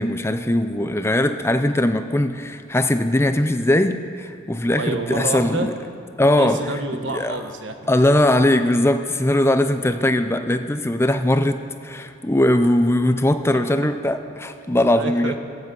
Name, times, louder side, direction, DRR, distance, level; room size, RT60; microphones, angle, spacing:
voice 1, 0.0-5.7 6.2-6.6 7.1-7.4 7.9-15.3, left 1 dB, 15° left, 9 dB, 0.5 m, -20 dB
voice 2, 4.7-5.7 6.3-7.8 14.9-15.4, right 2 dB, 70° right, 6 dB, 1.3 m, -28 dB
15.5 x 15.5 x 5.5 m, 2.6 s
head